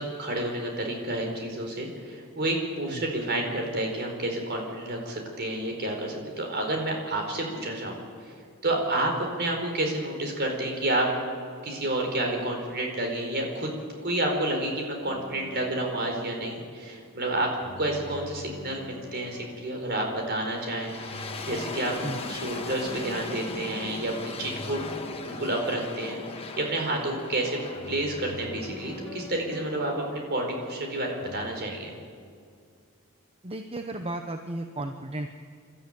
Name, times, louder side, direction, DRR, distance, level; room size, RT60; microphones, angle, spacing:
voice 1, 0.0-8.0 8.6-11.1 11.6-17.5 17.8-21.9 22.3-24.8 25.2-27.6 27.9-31.9, right 1 dB, 50° right, 2 dB, 4.3 m, -30 dB
sound 1, 15.0-17.0 17.6-20.5 21.0-23.7 24.4-30.7 31.2-31.5, left 1 dB, 75° left, 1.9 m, -46 dB
sound 2, 20.5-31.4, left 3 dB, 25° left, 1.4 m, -39 dB
voice 2, 33.4-35.4, right 1 dB, 25° right, 6 dB, 0.8 m, -34 dB
28.5 x 13.0 x 8.9 m, 2.2 s
head